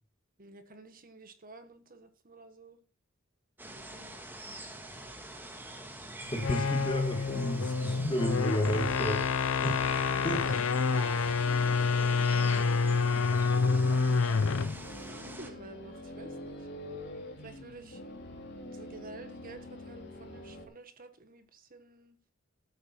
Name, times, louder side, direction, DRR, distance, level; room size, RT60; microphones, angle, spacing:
voice 1, 0.4-2.8 3.6-4.1 10.4-10.6 11.9-12.7 13.0-14.4 15.1-16.7 17.4-18.0 18.7-22.2, right 2 dB, 45° right, 9 dB, 1.5 m, -51 dB
sound 1, 3.6-15.5, right 1 dB, 10° right, 1.6 m, -45 dB
sound 2, 6.3-14.8, left 4 dB, 70° left, 0.6 m, -28 dB
voice 2, 6.3-9.2 9.6-9.9 10.2-10.4, equal, 25° left, 4 dB, 1.7 m, -32 dB
sound 3, 9.7-20.7, left 1 dB, 55° left, 2.8 m, -46 dB
14.0 x 8.5 x 4.4 m, 0.37 s
head